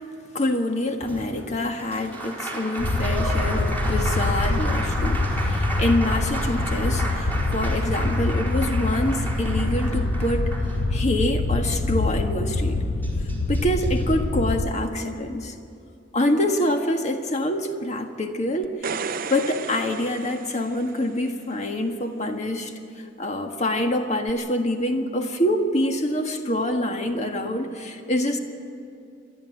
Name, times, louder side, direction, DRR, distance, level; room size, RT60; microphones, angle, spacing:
voice 1, 0.3-10.5 10.9-12.8 13.5-15.5 16.1-18.7 19.3-28.4, left 1 dB, 40° left, 4 dB, 1.6 m, -26 dB
Applause, 1.0-11.3 12.6-12.7 13.0-14.0, right 2 dB, 10° left, 4.3 m, -33 dB
sound 1, 2.8-14.7, left 2 dB, 80° left, 1.1 m, -25 dB
sound 2, 18.6-21.2 24.3-24.4, right 5 dB, 50° right, 0.6 m, -33 dB
28.0 x 11.5 x 9.2 m, 2.5 s
head